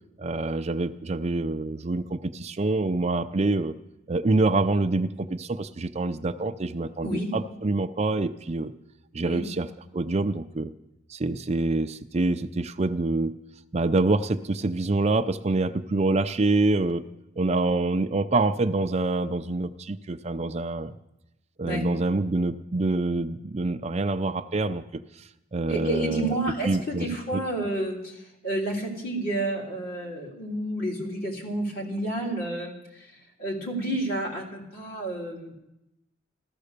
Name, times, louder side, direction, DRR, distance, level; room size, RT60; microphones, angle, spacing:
voice 1, 0.2-3.7 4.1-8.7 9.1-9.7 9.9-10.7 11.1-13.3 13.7-17.0 17.4-21.0 21.6-24.8 25.5-26.4 26.7-27.4, right 2 dB, 35° right, 8 dB, 0.5 m, -26 dB
voice 2, 7.0-7.4 9.2-9.5 21.7-22.0 25.7-28.2 28.4-32.8 33.4-35.5, right 1 dB, 50° left, -1 dB, 3.5 m, -30 dB
14.5 x 14.0 x 6.7 m, 0.92 s
head